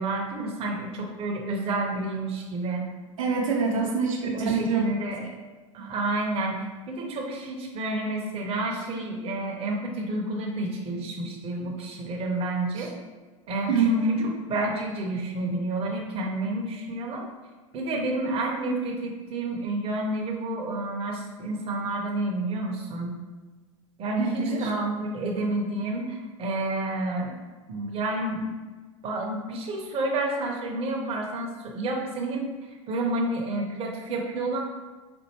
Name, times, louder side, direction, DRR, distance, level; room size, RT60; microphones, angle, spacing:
voice 1, 0.0-2.9 4.3-5.2 5.7-12.9 13.5-17.3 17.7-23.1 24.0-27.3 27.7-28.5 29.0-32.5 32.9-34.6, right 2 dB, 35° right, 0 dB, 0.7 m, -30 dB
voice 2, 3.2-4.8 5.8-5.9 12.8-12.9 13.7-14.3 24.2-24.7, right 4 dB, 75° right, -2 dB, 0.7 m, -25 dB
4.4 x 2.5 x 2.8 m, 1.3 s
hypercardioid pair, 85°, 17 cm